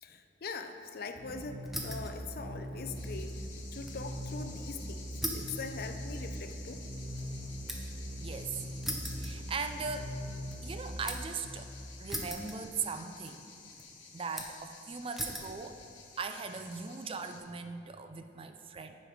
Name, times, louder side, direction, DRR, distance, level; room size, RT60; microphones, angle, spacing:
voice 1, 0.0-3.3 3.7-6.8, left 4 dB, 55° left, 7 dB, 0.5 m, -42 dB
sound 1, 1.1-11.9, equal, 60° right, 1.3 m, -41 dB
sound 2, 1.7-2.2 2.5-4.1 4.4-4.5 5.2-8.1 8.8-10.0 10.3-11.4 12.1-13.0 13.2-13.8 14.4-14.7 15.2-15.6 16.2-16.7, equal, ahead, 0.7 m, -41 dB
sound 3, 2.9-17.4, left 5 dB, 85° left, 1.2 m, -52 dB
voice 2, 8.2-8.6 9.2-10.2 10.6-11.7 12.0-13.5 14.1-15.8 16.2-19.0, right 5 dB, 30° right, 8 dB, 0.4 m, -39 dB
9.8 x 5.2 x 5.0 m, 2.4 s
head